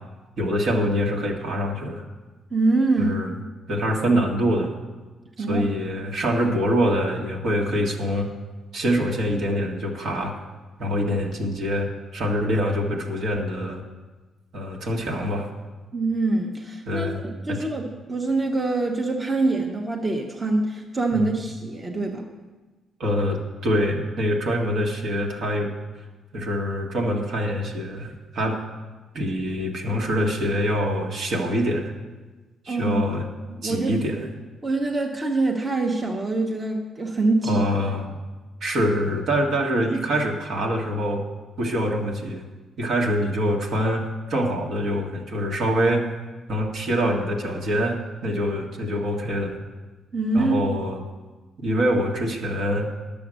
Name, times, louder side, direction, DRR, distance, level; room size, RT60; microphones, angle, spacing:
voice 1, 0.4-2.0 3.0-3.3 3.7-4.7 5.4-8.3 8.7-10.3 10.8-13.8 14.5-15.5 16.9-17.2 17.5-17.6 21.1-21.3 23.0-25.7 26.3-28.6 29.1-31.9 32.7-33.3 33.6-34.3 37.4-38.2 38.6-41.2 41.6-42.4 42.8-46.1 46.5-49.6 50.3-51.0 51.6-52.9, equal, 65° right, 0 dB, 1.7 m, -25 dB
voice 2, 2.5-3.2 5.4-5.7 15.9-22.2 32.7-33.0 33.5-34.0 34.6-37.6 50.1-50.6, right 2 dB, 30° right, 1 dB, 1.1 m, -24 dB
10.5 x 7.1 x 6.3 m, 1.2 s
cardioid pair, 90°, 0 cm